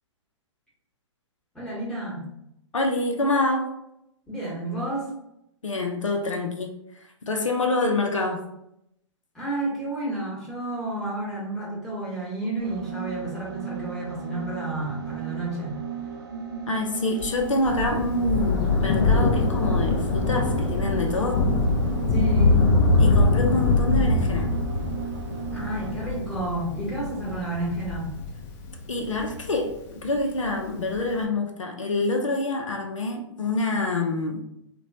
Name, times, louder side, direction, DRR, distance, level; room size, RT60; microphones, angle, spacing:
voice 1, 1.5-2.3 4.3-5.1 9.3-15.8 22.1-22.7 25.5-28.1, right 2 dB, 5° left, -7 dB, 1.1 m, -31 dB
voice 2, 2.7-3.7 5.6-6.7 7.2-8.4 16.7-21.5 23.0-24.5 28.9-34.4, left 2 dB, 90° left, 2 dB, 0.5 m, -26 dB
sound 1, 12.6-26.1, right 7 dB, 45° right, 0.4 m, -36 dB
Thunder, 17.2-30.1 31.0-31.1, left 3 dB, 35° left, 0.5 m, -23 dB
2.9 x 2.2 x 2.6 m, 0.78 s
figure-of-eight pair, 120°, 16 cm